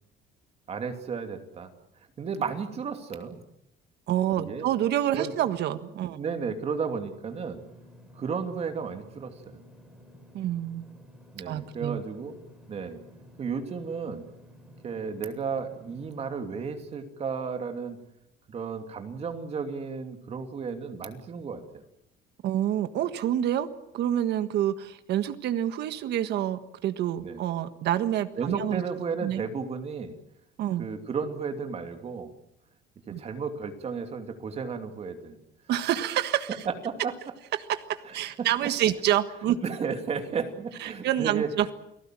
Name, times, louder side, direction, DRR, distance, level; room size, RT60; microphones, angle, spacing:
voice 1, 0.7-1.7 2.2-3.4 4.4-4.7 5.1-5.3 6.1-7.6 8.2-9.6 11.3-12.4 12.7-13.0 13.4-14.2 14.8-18.0 18.5-21.8 27.2-27.4 28.4-30.1 30.8-32.3 33.1-35.4 36.6-37.1 38.1-38.5 39.6-41.5, right 5 dB, 30° right, 6 dB, 2.8 m, -33 dB
voice 2, 4.1-6.2 10.3-10.8 11.5-12.0 22.4-23.7 23.9-28.8 29.2-29.5 30.6-30.9 33.1-33.2 35.7-36.6 37.7-39.6 40.8-41.7, right 11 dB, 60° right, 10 dB, 1.6 m, -27 dB
Engine / Mechanisms, 7.3-16.2, left 1 dB, 5° right, 5.6 m, -52 dB
29.5 x 19.0 x 7.7 m, 0.82 s
cardioid pair, 160°, 20 cm